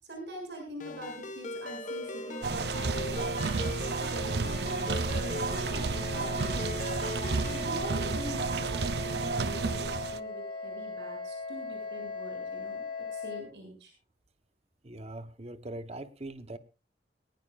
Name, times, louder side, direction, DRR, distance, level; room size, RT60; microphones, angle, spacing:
voice 1, 0.0-3.5 4.0-6.9 7.5-12.9 13.1-13.9, right 1 dB, 80° right, 2 dB, 7.1 m, -44 dB
Ringtone, 0.8-7.7, left 2 dB, 45° left, 1.4 m, -40 dB
sound 1, 1.8-13.4, left 3 dB, 30° left, 2.4 m, -40 dB
sound 2, 2.4-10.2, right 4 dB, 65° right, 0.7 m, -31 dB
voice 2, 14.8-16.6, right 1 dB, 35° right, 11 dB, 1.0 m, -41 dB
20.5 x 18.5 x 2.5 m, 0.32 s
head